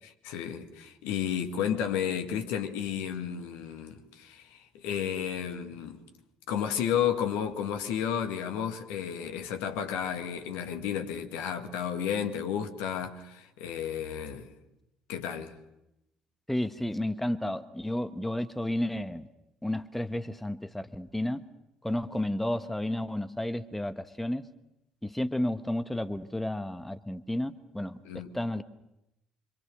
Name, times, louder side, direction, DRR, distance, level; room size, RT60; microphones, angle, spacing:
voice 1, 0.2-6.0 6.5-14.5 15.1-15.5 28.0-28.3, left 8 dB, 65° left, 2.1 m, -32 dB
voice 2, 16.5-19.3 19.6-21.4 21.8-24.5 25.0-28.0 28.3-28.6, left 1 dB, 5° left, 1.2 m, -32 dB
26.5 x 25.0 x 6.5 m
figure-of-eight pair, 50°, 4 cm